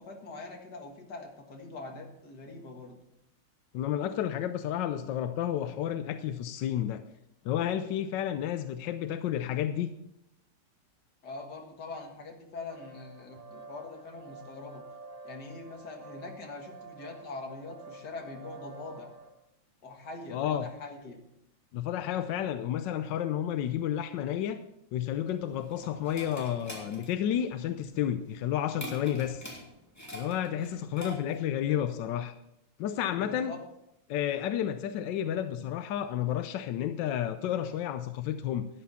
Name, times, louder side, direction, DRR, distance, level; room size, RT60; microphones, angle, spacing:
voice 1, 0.0-3.0 11.2-14.8 15.2-19.1 19.8-21.2 33.1-33.6, left 3 dB, 50° left, 2 dB, 2.2 m, -43 dB
voice 2, 3.7-7.0 7.4-9.9 20.3-20.7 21.7-24.6 24.9-29.4 30.1-32.3 32.8-33.5 34.1-38.7, left 10 dB, 75° left, 9 dB, 1.1 m, -31 dB
sound 1, 12.7-19.3, right 3 dB, 80° right, 2.6 m, -49 dB
sound 2, 25.2-31.5, equal, 5° left, 2.6 m, -45 dB
12.5 x 10.5 x 4.2 m, 0.81 s
omnidirectional pair, 2.4 m